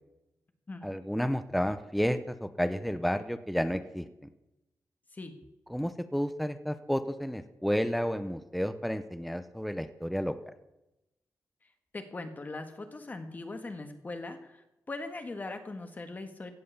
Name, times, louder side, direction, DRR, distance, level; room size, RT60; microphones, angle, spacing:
voice 1, 0.8-4.1 5.7-10.3, equal, ahead, 11 dB, 0.6 m, -31 dB
voice 2, 11.9-16.5, left 2 dB, 30° left, 7 dB, 1.6 m, -40 dB
16.5 x 7.7 x 6.8 m, 0.93 s
wide cardioid pair, 145°, 6 cm